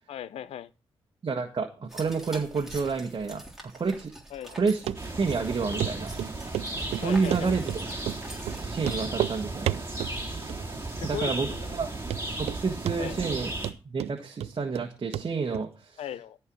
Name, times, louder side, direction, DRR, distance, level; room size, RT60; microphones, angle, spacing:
voice 1, 0.1-0.7 4.3-4.6 7.0-7.6 10.9-11.7 13.0-13.2 16.0-16.4, left 10 dB, 80° left, 0.6 m, -37 dB
voice 2, 1.2-4.1 4.6-4.8 5.2-6.1 6.9-7.7 8.6-9.8 11.0-11.5 11.8-11.9 12.4-13.5 13.8-16.0, right 5 dB, 50° right, 1.5 m, -29 dB
sound 1, 1.9-9.1, right 1 dB, 5° right, 3.4 m, -46 dB
Run, 4.9-5.0 5.3-5.4 5.8-5.9 6.2-6.7 6.9-7.8 8.1-8.2 8.5-8.6 8.8-9.4 9.7-10.2 10.5-10.9 11.2-11.3 11.8-11.9 12.1-12.6 12.9-13.4 13.6-14.9 15.1-15.3 15.5-15.6, right 12 dB, 90° right, 0.4 m, -31 dB
sound 2, 5.0-13.7, right 2 dB, 25° right, 2.6 m, -35 dB
14.0 x 4.6 x 6.2 m
cardioid pair, 65°, 10 cm